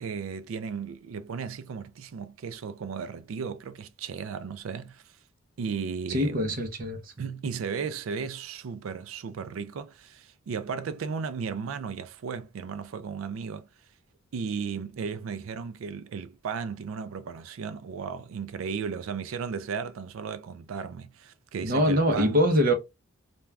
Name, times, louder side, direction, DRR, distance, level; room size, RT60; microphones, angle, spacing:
voice 1, 0.0-5.0 5.6-6.6 7.2-13.7 14.3-22.4, right 6 dB, 85° right, 0.4 m, -35 dB
voice 2, 6.1-7.3 21.6-22.7, equal, 45° right, 0.7 m, -24 dB
2.3 x 2.3 x 3.1 m
head